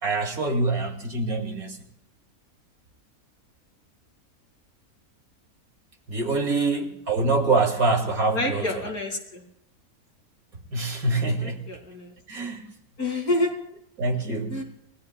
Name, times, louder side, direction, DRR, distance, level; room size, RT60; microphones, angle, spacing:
voice 1, 0.0-1.8 6.1-8.8 10.7-11.7 12.3-12.7 14.0-14.6, right 3 dB, 75° right, 3 dB, 2.8 m, -25 dB
voice 2, 8.3-9.4 11.4-12.1 13.0-13.5 14.5-14.6, left 2 dB, 80° left, 3 dB, 3.0 m, -28 dB
29.5 x 17.5 x 2.3 m, 0.80 s
omnidirectional pair, 1.6 m